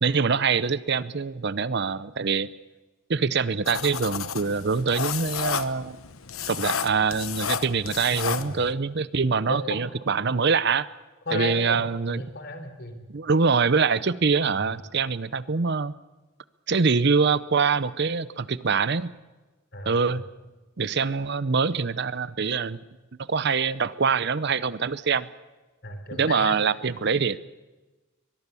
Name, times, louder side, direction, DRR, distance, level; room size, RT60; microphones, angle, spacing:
voice 1, 0.0-2.5 3.1-6.0 6.5-10.9 11.3-12.2 13.1-15.9 16.7-19.1 19.9-20.2 20.8-22.8 23.2-25.3 26.2-27.4, right 5 dB, 55° right, 17 dB, 0.7 m, -24 dB
sound 1, 3.7-8.7, left 7 dB, 85° left, 1.1 m, -32 dB
voice 2, 9.5-9.8 11.3-13.0 14.5-14.6 19.7-20.2 25.8-26.5, left 2 dB, 50° left, 7 dB, 3.7 m, -34 dB
23.0 x 21.5 x 7.0 m, 1.2 s
head